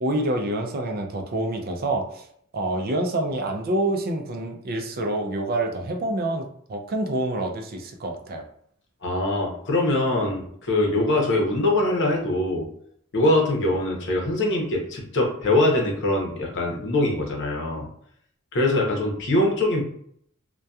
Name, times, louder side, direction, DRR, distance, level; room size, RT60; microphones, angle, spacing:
voice 1, 0.0-2.3 2.5-8.4, right 1 dB, 45° right, 4 dB, 0.4 m, -27 dB
voice 2, 9.0-12.7 13.1-17.9 18.5-19.8, left 1 dB, 60° left, -1 dB, 0.8 m, -23 dB
2.7 x 2.2 x 2.3 m, 0.66 s
head